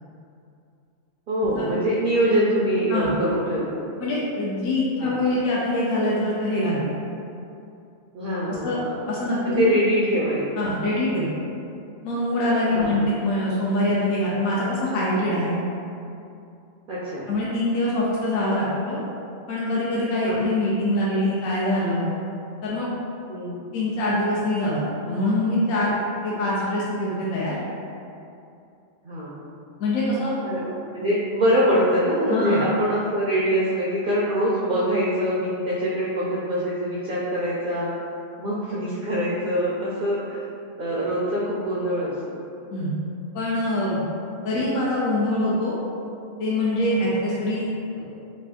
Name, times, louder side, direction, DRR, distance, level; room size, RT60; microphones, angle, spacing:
voice 1, 1.3-3.8 5.0-5.2 8.1-8.9 9.4-10.7 12.7-12.9 16.9-17.3 20.2-20.4 23.3-23.7 29.0-29.4 30.4-37.9 38.4-40.4 40.8-42.1, equal, 60° right, -6 dB, 0.5 m, -24 dB
voice 2, 4.0-6.8 8.6-8.8 9.1-9.6 10.6-11.3 12.0-15.5 17.3-19.0 19.5-22.1 22.6-22.9 23.7-26.0 26.2-27.5 29.8-30.3 32.3-32.6 42.7-42.9 43.3-44.0 44.4-45.7 46.4-48.1, left 1 dB, 80° left, -7 dB, 1.1 m, -24 dB
3.2 x 2.5 x 3.5 m, 2.6 s
omnidirectional pair, 1.4 m